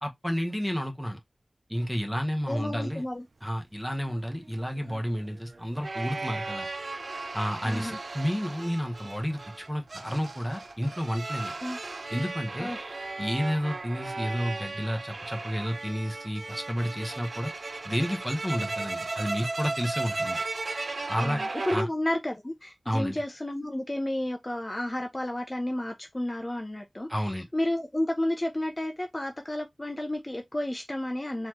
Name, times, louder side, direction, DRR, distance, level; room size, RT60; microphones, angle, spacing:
voice 1, 0.0-1.2 1.7-3.0 3.4-6.7 7.3-11.5 12.1-12.7 13.2-17.5 17.8-20.4 21.1-21.4 21.7-21.9 22.8-23.2 27.1-27.5, equal, ahead, 1.1 m, -31 dB
voice 2, 2.5-3.3 7.6-8.0 11.6-11.8 12.6-12.8 21.2-31.5, left 1 dB, 25° left, 0.6 m, -31 dB
sound 1, 4.1-21.8, right 3 dB, 60° right, 0.4 m, -36 dB
4.1 x 3.2 x 2.9 m
wide cardioid pair, 65°, 0 cm